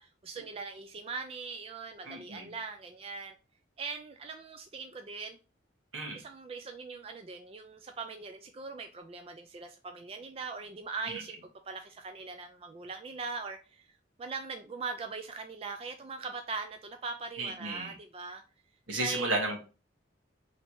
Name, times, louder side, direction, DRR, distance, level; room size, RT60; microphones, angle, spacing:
voice 1, 0.0-3.3 3.8-5.4 6.1-11.4 11.7-13.8 14.2-18.4 19.0-19.3, right 4 dB, 30° right, 0.3 m, -41 dB
voice 2, 2.0-2.5 5.9-6.2 11.1-11.2 17.4-17.9 18.9-19.6, right 2 dB, 85° right, 1.4 m, -33 dB
3.2 x 2.8 x 4.5 m
head